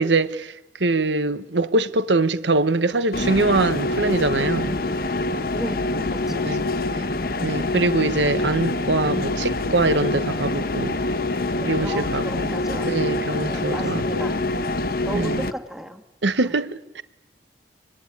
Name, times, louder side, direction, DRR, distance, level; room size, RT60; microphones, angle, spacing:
voice 1, 0.0-4.8 6.4-7.0 7.4-11.0 11.6-12.5 12.8-14.3 15.1-15.4 16.2-17.0, right 2 dB, 85° right, 1.3 m, -23 dB
sound 1, 3.1-15.5, left 2 dB, 55° left, 1.2 m, -25 dB
voice 2, 5.5-6.6 11.6-14.4 15.1-16.0 16.4-16.5, equal, ahead, 1.7 m, -35 dB
25.0 x 21.5 x 9.7 m
head